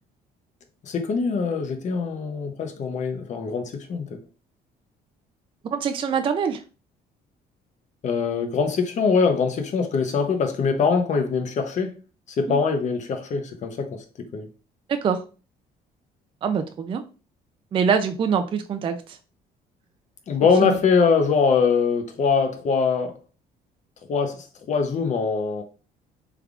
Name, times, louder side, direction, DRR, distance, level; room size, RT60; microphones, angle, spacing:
voice 1, 0.8-4.2 8.0-11.9 12.4-14.5 20.3-23.1 24.1-25.6, left 5 dB, 45° left, 0.7 m, -23 dB
voice 2, 5.7-6.6 12.5-12.6 14.9-15.2 16.4-17.0 17.7-19.2 20.4-20.8, right 6 dB, 30° right, 0.3 m, -24 dB
3.4 x 3.4 x 2.4 m
cardioid pair, 110°, 17 cm